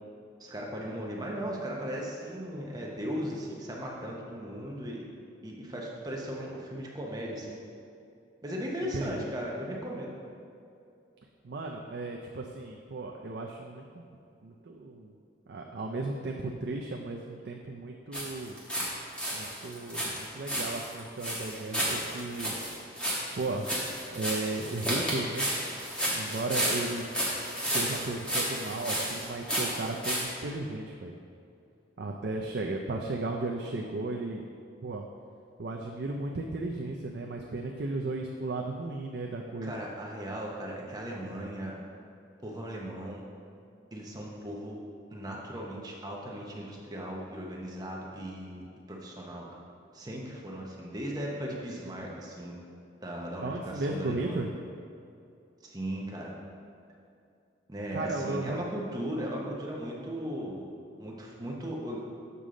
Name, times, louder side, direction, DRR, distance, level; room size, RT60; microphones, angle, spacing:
voice 1, 0.4-5.0 5.4-7.6 8.4-10.1 39.6-41.8 42.4-43.2 43.9-44.8 45.1-48.6 48.9-49.4 49.9-52.5 53.0-54.4 55.6-56.3 57.7-60.6 61.0-62.0, equal, 20° right, -2 dB, 0.8 m, -37 dB
voice 2, 8.9-9.3 11.4-14.0 14.4-15.1 15.5-18.5 19.3-22.5 23.4-23.7 24.1-25.5 26.1-27.0 27.6-31.1 32.0-34.5 34.8-35.0 35.6-39.7 53.4-54.5 57.9-58.6, right 2 dB, 60° right, 1 dB, 0.5 m, -35 dB
sound 1, 18.1-18.9 19.1-30.2, equal, 5° left, 1.3 m, -32 dB
6.8 x 6.1 x 3.8 m, 2.5 s
head